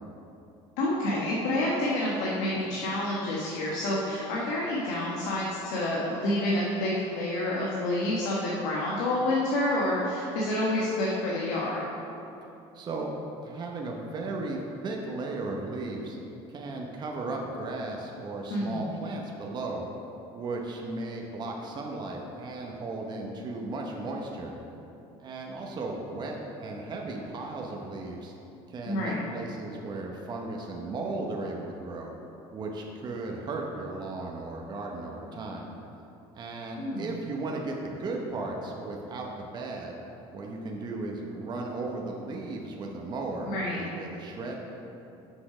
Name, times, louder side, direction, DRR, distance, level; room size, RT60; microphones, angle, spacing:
voice 1, 0.8-11.8 18.5-18.9 28.9-29.3 36.8-37.1 43.5-43.8, left 1 dB, 85° left, -5 dB, 1.2 m, -28 dB
voice 2, 12.7-13.1 13.4-16.2 16.5-19.9 20.3-24.5 25.2-28.3 28.7-32.1 32.5-35.7 36.3-39.9 40.3-44.6, right 2 dB, 35° right, 0 dB, 0.9 m, -35 dB
6.3 x 5.7 x 5.0 m, 2.8 s
cardioid pair, 115°, 12 cm